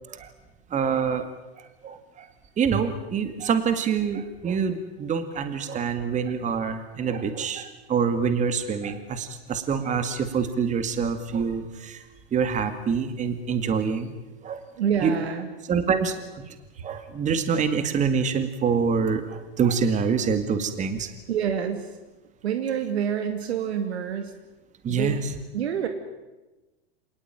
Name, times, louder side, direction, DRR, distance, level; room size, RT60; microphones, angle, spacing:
voice 1, 0.7-1.3 1.8-2.3 2.6-12.0 12.3-14.1 14.4-14.6 15.0-15.1 15.7-16.5 16.8-21.1 24.8-25.3, right 6 dB, 25° right, 9 dB, 2.2 m, -26 dB
voice 2, 14.8-15.5 21.3-21.9 22.4-24.3 24.9-25.2 25.5-25.9, right 8 dB, 85° right, 7 dB, 2.6 m, -27 dB
26.5 x 20.0 x 9.1 m, 1.1 s
supercardioid pair, 135°, 31 cm